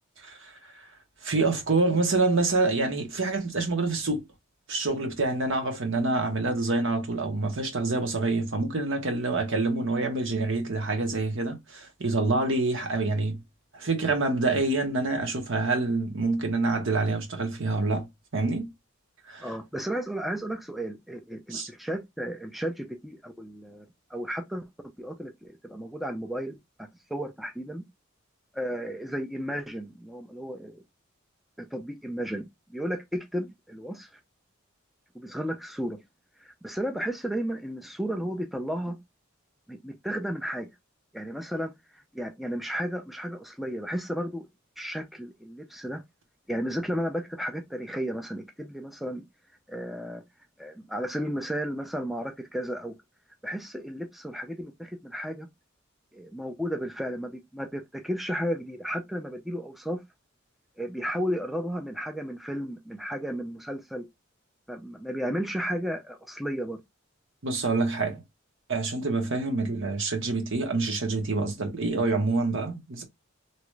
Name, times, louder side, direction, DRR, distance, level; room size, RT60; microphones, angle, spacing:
voice 1, 0.2-0.6 1.2-4.2 4.7-13.4 13.7-18.1 18.3-18.7 19.3-19.5 21.5-21.7 67.4-68.2 68.7-73.0, right 3 dB, 65° right, 1.1 m, -27 dB
voice 2, 19.4-24.7 25.0-27.8 28.5-30.8 31.6-34.1 35.1-36.0 36.4-39.0 39.7-40.7 41.1-44.4 44.8-46.0 46.5-49.3 49.7-50.2 50.6-52.9 53.4-55.5 56.1-60.0 60.8-64.1 64.7-66.8, equal, ahead, 0.4 m, -33 dB
2.9 x 2.4 x 3.1 m
head